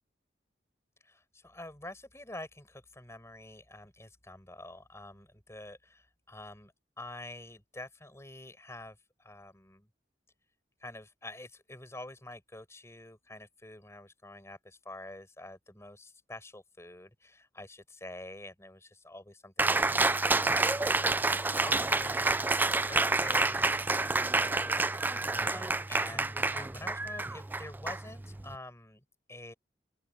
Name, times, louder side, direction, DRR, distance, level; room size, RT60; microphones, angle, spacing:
voice 1, 1.0-9.9 10.8-29.0 29.3-29.5, left 2 dB, 15° left, 6.2 m, -47 dB
Cheering, 19.6-28.5, right 3 dB, 10° right, 0.3 m, -29 dB
open air
head